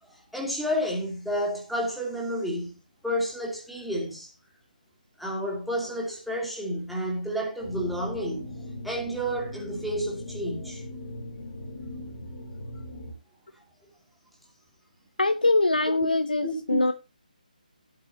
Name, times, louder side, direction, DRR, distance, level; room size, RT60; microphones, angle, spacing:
voice 1, 0.0-2.7 3.0-4.3 5.2-8.6 8.8-10.8 15.8-15.9 16.4-16.8, equal, ahead, 2.8 m, -30 dB
sound 1, 7.6-13.1, left 1 dB, 45° left, 3.7 m, -40 dB
voice 2, 15.2-16.9, left 2 dB, 80° left, 0.9 m, -23 dB
15.5 x 8.8 x 2.9 m
figure-of-eight pair, 150°, 5 cm